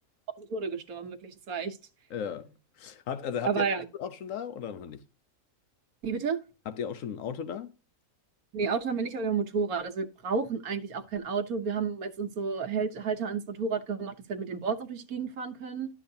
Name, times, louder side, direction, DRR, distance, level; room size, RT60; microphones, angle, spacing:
voice 1, 0.4-1.8 3.4-3.8 6.0-6.4 8.5-15.9, right 5 dB, 90° right, 1.5 m, -31 dB
voice 2, 2.1-3.6 3.9-5.0 6.6-7.7, left 8 dB, 65° left, 1.2 m, -36 dB
12.0 x 7.7 x 2.7 m
omnidirectional pair, 1.5 m